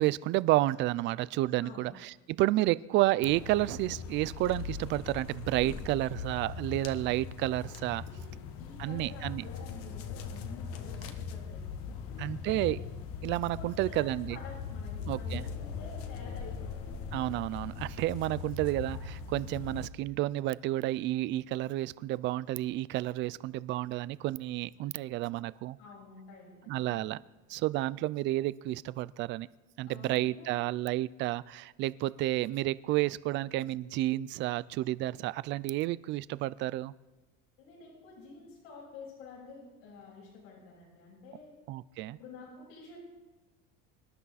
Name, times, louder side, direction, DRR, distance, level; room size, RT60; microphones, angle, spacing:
voice 1, 0.0-8.0 8.8-9.4 12.2-12.8 13.2-14.4 15.1-15.4 17.1-25.8 26.7-27.2 27.5-29.5 29.8-36.9 41.7-42.2, right 16 dB, 40° right, 19 dB, 0.4 m, -31 dB
voice 2, 1.6-1.9 8.0-12.0 12.5-12.8 13.6-16.8 25.8-27.1 29.9-30.7 37.6-41.5 42.1-43.0, left 4 dB, 75° left, -5 dB, 7.0 m, -50 dB
sound 1, 3.2-19.9, left 6 dB, 50° left, 1.3 m, -40 dB
25.5 x 12.0 x 4.1 m, 1.1 s
cardioid pair, 165°, 30 cm